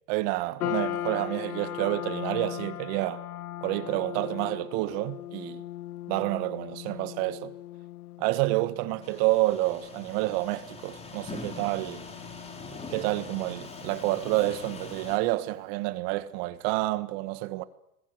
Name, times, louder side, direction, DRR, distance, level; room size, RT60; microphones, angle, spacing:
voice 1, 0.1-3.2 3.6-5.6 6.1-7.5 8.2-12.0 12.9-17.6, right 18 dB, 45° right, 1.7 m, -29 dB
sound 1, 0.6-15.0, left 14 dB, 85° left, 0.9 m, -39 dB
sound 2, 9.0-15.2, left 3 dB, 15° left, 4.0 m, -43 dB
27.0 x 21.0 x 8.1 m
supercardioid pair, 140°, 44 cm